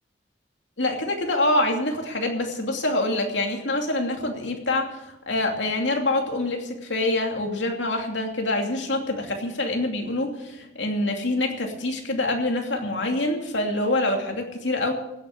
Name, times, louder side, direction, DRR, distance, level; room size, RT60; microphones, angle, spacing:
voice 1, 0.8-14.9, left 2 dB, 80° left, 2 dB, 2.7 m, -25 dB
17.0 x 8.7 x 7.8 m, 0.92 s
head